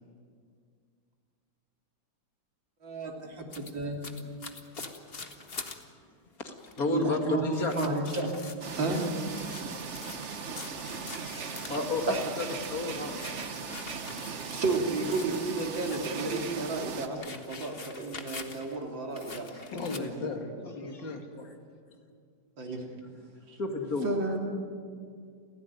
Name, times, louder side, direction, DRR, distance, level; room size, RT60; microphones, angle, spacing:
voice 1, 2.8-4.1 6.9-8.3 8.7-9.1 12.1-12.2 14.5-20.1 22.6-23.0 23.5-23.6 24.0-24.4, right 3 dB, 75° right, 1 dB, 3.6 m, -32 dB
sound 1, 3.5-5.8 6.3-6.4 6.6-7.0 7.5-12.2 12.6-16.5 16.8-18.8 19.2-20.0, left 4 dB, 35° left, 1.5 m, -45 dB
voice 2, 6.4-7.8 11.1-13.2 20.9-21.0 21.4-21.5 23.6-24.1, left 3 dB, 50° left, 4 dB, 2.5 m, -32 dB
sound 2, 8.6-17.1, right 5 dB, 45° right, 1.3 m, -38 dB
voice 3, 19.7-21.3, left 3 dB, 75° left, 4 dB, 3.0 m, -36 dB
29.0 x 16.0 x 9.5 m, 2.2 s
omnidirectional pair, 2.0 m